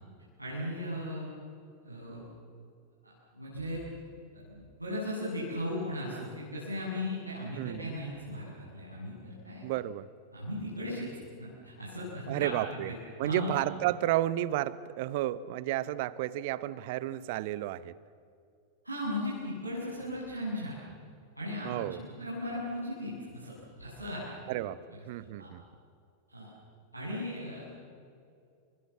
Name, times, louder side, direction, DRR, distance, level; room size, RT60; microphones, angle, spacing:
voice 1, 0.4-1.2 1.8-2.2 3.3-3.8 4.3-9.6 10.3-11.1 11.4-13.6 18.8-20.8 21.4-21.8 22.2-24.3 25.4-25.5 26.3-26.5 26.9-27.6, left 1 dB, 85° right, -8 dB, 7.7 m, -37 dB
voice 2, 7.6-8.0 9.6-10.1 12.3-12.9 13.2-18.0 21.6-22.0 24.5-25.6, right 14 dB, 50° right, 18 dB, 1.0 m, -32 dB
29.5 x 25.5 x 7.4 m, 2.4 s
figure-of-eight pair, 90°, 0 cm